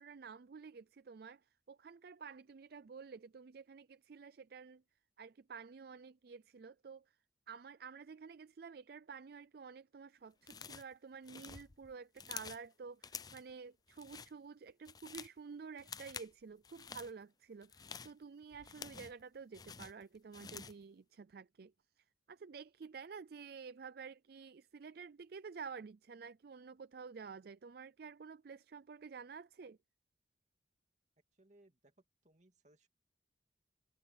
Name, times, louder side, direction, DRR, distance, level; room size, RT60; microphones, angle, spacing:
voice 1, 0.0-1.4 1.7-4.8 5.2-7.0 7.5-21.7 22.3-29.8, right 5 dB, 55° right, 0.4 m, -51 dB
sound 1, 10.4-10.9 11.2-12.7 13.0-13.5 13.9-14.3 14.7-15.4 15.8-16.3 16.6-17.1 17.6-19.2 19.5-20.8, left 6 dB, 20° left, 0.4 m, -49 dB
voice 2, 31.4-31.9 32.2-32.9, right 1 dB, 40° right, 2.6 m, -67 dB
head